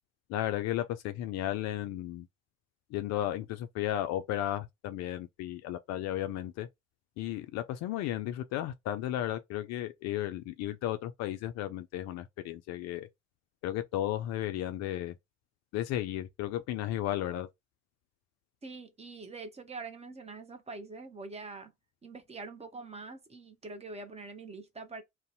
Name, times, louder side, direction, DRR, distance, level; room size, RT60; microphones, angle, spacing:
voice 1, 0.3-2.3 2.9-6.7 7.2-13.1 13.6-15.1 15.7-17.5, left 13 dB, 45° left, 0.4 m, -34 dB
voice 2, 18.6-21.7 22.0-25.0, right 3 dB, 15° right, 0.6 m, -44 dB
2.6 x 2.1 x 3.8 m
figure-of-eight pair, 50°, 38 cm